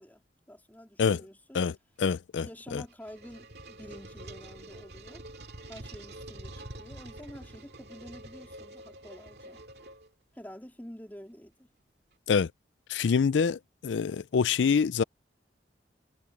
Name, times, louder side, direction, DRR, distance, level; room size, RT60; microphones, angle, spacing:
voice 1, 0.0-1.6 2.4-5.2 5.7-9.6 10.3-11.7, equal, 10° left, 3.8 m, -48 dB
voice 2, 2.0-2.5 2.7-2.8 12.3-12.5 12.9-15.0, left 6 dB, 85° left, 0.4 m, -25 dB
sound 1, 2.7-10.4, right 1 dB, 65° right, 2.3 m, -46 dB
head